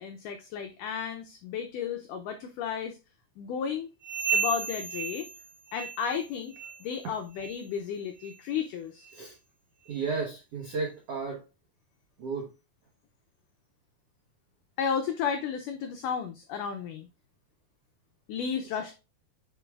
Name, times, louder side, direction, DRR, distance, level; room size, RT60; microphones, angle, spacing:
voice 1, 0.0-3.0 3.4-3.9 4.3-5.3 5.7-9.1 14.8-17.1 18.3-18.9, left 7 dB, 90° left, 6 dB, 1.8 m, -33 dB
sound 1, 4.0-6.2 6.5-6.9 7.3-7.6 8.2-8.3 9.0-9.1 9.9-10.0, right 5 dB, 25° right, 1.8 m, -33 dB
voice 2, 9.9-11.4 12.2-12.5, right 4 dB, 80° right, -1 dB, 1.3 m, -33 dB
9.0 x 4.6 x 2.4 m, 0.29 s
omnidirectional pair, 4.5 m